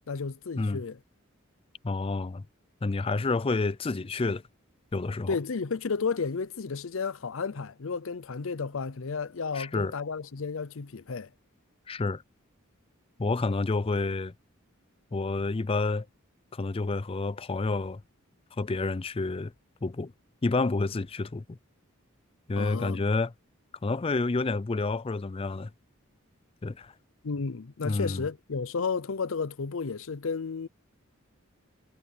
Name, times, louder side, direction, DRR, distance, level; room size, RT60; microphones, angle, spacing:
voice 1, 0.1-1.0 5.3-11.3 22.6-23.0 27.2-30.7, left 5 dB, 70° left, 0.6 m, -32 dB
voice 2, 1.8-2.4 2.8-4.4 4.9-5.4 9.5-9.9 11.9-12.2 13.2-14.3 15.1-16.1 16.5-18.0 18.6-19.5 19.8-20.1 20.4-21.6 22.5-23.3 23.8-25.7 26.6-26.9 27.8-28.3, left 3 dB, 25° left, 0.4 m, -29 dB
head